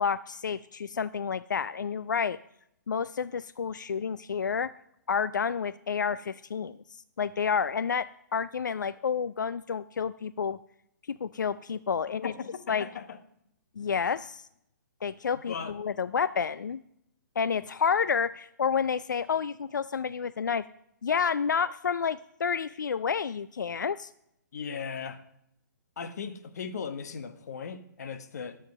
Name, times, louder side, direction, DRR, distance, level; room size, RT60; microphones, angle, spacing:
voice 1, 0.0-2.4 2.9-4.7 5.1-6.8 7.2-10.6 11.1-12.3 12.7-12.9 13.8-14.5 15.0-16.8 17.4-20.6 21.0-24.1, left 6 dB, 80° left, 0.4 m, -29 dB
voice 2, 12.2-13.2 15.5-15.7 24.5-25.2 26.0-28.6, left 6 dB, 60° left, 1.2 m, -37 dB
12.5 x 7.2 x 5.3 m
figure-of-eight pair, 130°, 10 cm